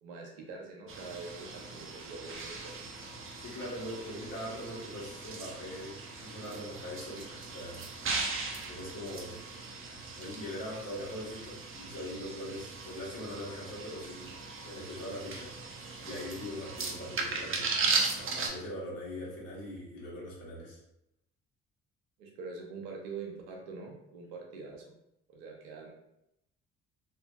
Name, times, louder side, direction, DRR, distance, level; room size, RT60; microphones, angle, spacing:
voice 1, 0.0-2.8 22.2-24.9 25.3-25.9, right 4 dB, 85° right, 0 dB, 0.6 m, -44 dB
sound 1, 0.9-18.5, right 4 dB, 35° right, 0.6 m, -38 dB
voice 2, 3.4-7.8 8.6-9.4 10.2-14.3 14.6-15.5 16.0-17.7 18.2-20.8, left 1 dB, 60° left, -5 dB, 1.3 m, -41 dB
2.6 x 2.6 x 2.3 m, 0.82 s
hypercardioid pair, 50°, 35 cm